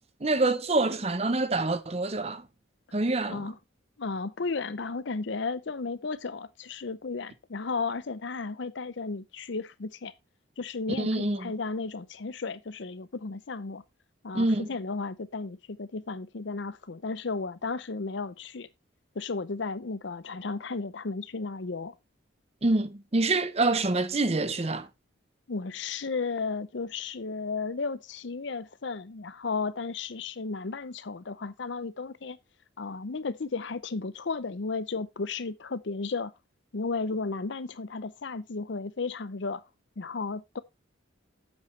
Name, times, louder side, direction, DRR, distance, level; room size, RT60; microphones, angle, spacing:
voice 1, 0.2-2.4 2.9-3.4 11.0-11.5 14.3-14.7 22.6-24.9, right 2 dB, 30° right, 0.8 m, -26 dB
voice 2, 4.0-10.1 10.6-13.8 14.2-18.7 19.1-21.9 25.5-32.4 32.8-36.3 36.7-39.6 40.0-40.6, left 4 dB, 60° left, 0.6 m, -34 dB
8.8 x 7.9 x 3.2 m
head